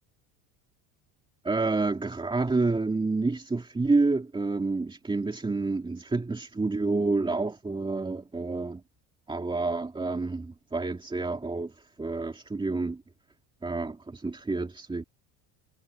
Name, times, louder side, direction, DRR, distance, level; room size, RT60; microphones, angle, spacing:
voice 1, 1.4-8.8 9.3-11.7 12.0-13.0 13.6-15.0, right 3 dB, 10° right, 2.7 m, -28 dB
cardioid pair, 140°, 42 cm